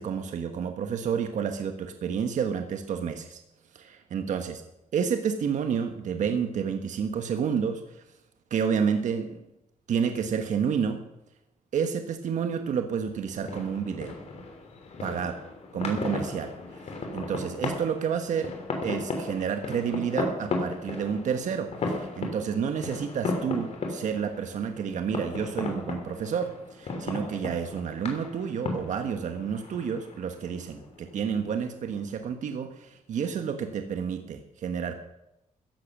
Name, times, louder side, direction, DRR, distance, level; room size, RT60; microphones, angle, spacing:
voice 1, 0.0-3.4 3.7-4.6 4.9-7.8 8.5-9.4 9.9-11.0 11.7-14.1 15.0-15.3 15.7-16.8 17.1-18.5 18.8-21.7 21.9-35.0, right 7 dB, 70° right, 6 dB, 1.3 m, -30 dB
sound 1, 13.0-32.3, left 3 dB, 55° left, 3.3 m, -36 dB
15.5 x 10.5 x 6.1 m, 0.89 s
cardioid pair, 115°, 13 cm